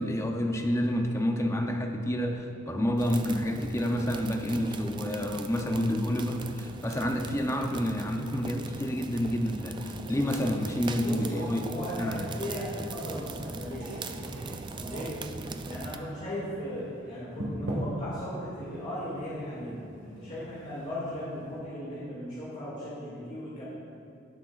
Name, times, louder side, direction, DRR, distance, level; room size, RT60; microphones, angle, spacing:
voice 1, 0.0-11.6 12.0-12.2, equal, 15° left, 2 dB, 0.7 m, -29 dB
sound 1, 3.0-16.0, right 3 dB, 20° right, 0.3 m, -41 dB
sound 2, 5.3-21.6, equal, 60° right, 1.8 m, -44 dB
voice 2, 10.9-14.5 14.8-15.2 15.6-23.7, equal, 35° left, -9 dB, 2.4 m, -37 dB
18.0 x 7.8 x 2.5 m, 2.5 s
head